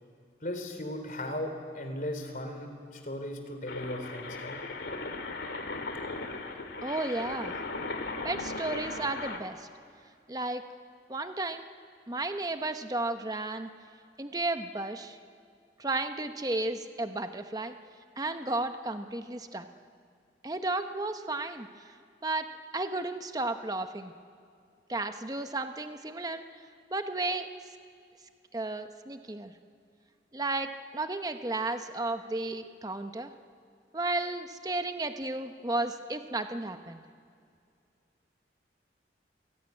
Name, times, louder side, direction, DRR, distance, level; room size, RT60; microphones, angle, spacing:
voice 1, 0.4-4.6, left 1 dB, 50° left, 5 dB, 3.5 m, -37 dB
sound 1, 3.7-9.4, left 3 dB, 85° left, 2.4 m, -37 dB
voice 2, 6.8-7.6 8.2-9.7 10.3-10.7 11.1-11.6 12.1-13.7 14.2-15.2 15.8-17.7 18.2-19.7 20.4-21.7 22.2-22.5 22.7-24.1 24.9-26.4 26.9-27.5 28.5-29.5 30.3-33.3 33.9-37.0, right 2 dB, 20° right, 8 dB, 0.8 m, -33 dB
27.0 x 19.0 x 9.6 m, 2.4 s
head